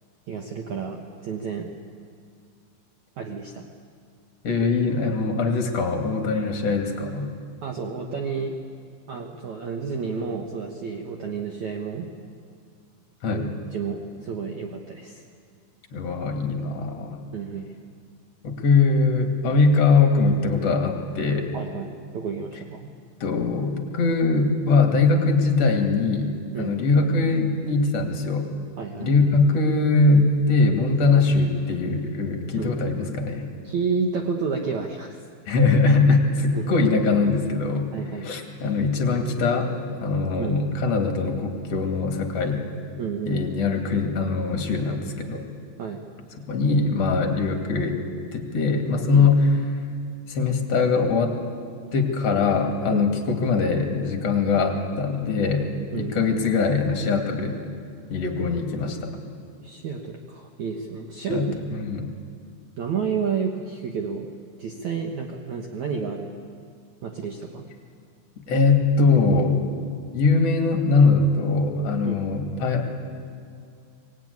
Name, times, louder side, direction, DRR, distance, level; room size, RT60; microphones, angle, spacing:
voice 1, 0.3-1.7 3.2-3.6 6.3-6.5 7.6-8.5 9.1-12.1 13.3-15.2 17.3-17.7 21.5-22.9 26.5-26.7 28.8-29.1 32.6-32.8 33.6-35.2 36.5-36.8 37.9-38.3 40.4-40.6 43.0-43.5 45.8-46.0 49.1-49.3 52.9-53.1 55.9-56.3 59.6-61.6 62.8-64.3 64.6-66.3 67.0-67.7 72.0-72.2, right 5 dB, 70° right, 2 dB, 1.8 m, -30 dB
voice 2, 4.4-7.3 13.2-13.5 15.9-17.2 18.4-21.5 23.2-28.5 29.0-33.5 35.5-37.8 38.2-39.7 40.0-42.8 43.3-45.5 46.5-48.0 48.3-49.4 50.3-51.3 51.9-57.6 58.1-59.1 61.3-61.5 61.7-62.1 68.5-69.6 70.1-72.9, left 4 dB, 45° left, 3 dB, 2.7 m, -22 dB
24.0 x 21.0 x 9.6 m, 2.2 s
omnidirectional pair, 5.3 m